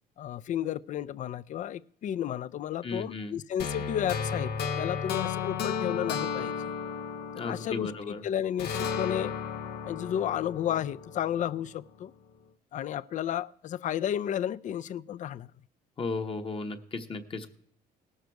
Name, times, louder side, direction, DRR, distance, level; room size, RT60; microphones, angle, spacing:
voice 1, 0.2-4.5 4.8-6.7 7.4-9.3 9.8-12.1 12.7-15.5, left 10 dB, 50° left, 0.4 m, -32 dB
voice 2, 2.8-3.3 7.4-8.2 16.0-17.5, left 3 dB, 30° left, 1.0 m, -35 dB
sound 1, 3.6-8.1 8.6-11.7, left 6 dB, 70° left, 0.9 m, -34 dB
18.0 x 6.6 x 4.6 m
cardioid pair, 110°, 17 cm